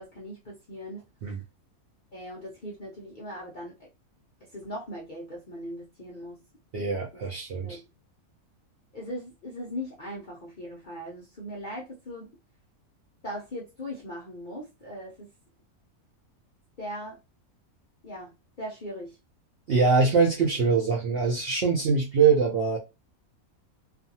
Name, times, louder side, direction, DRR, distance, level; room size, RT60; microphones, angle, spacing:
voice 1, 0.0-1.0 2.1-3.9 4.5-6.4 7.1-7.2 7.6-7.8 8.9-12.3 13.2-15.3 16.8-17.2 18.0-18.3 18.6-19.2, equal, 55° left, 0.5 m, -39 dB
voice 2, 6.7-7.8 19.7-22.8, right 5 dB, 65° right, 0.6 m, -23 dB
2.5 x 2.4 x 2.7 m
omnidirectional pair, 1.6 m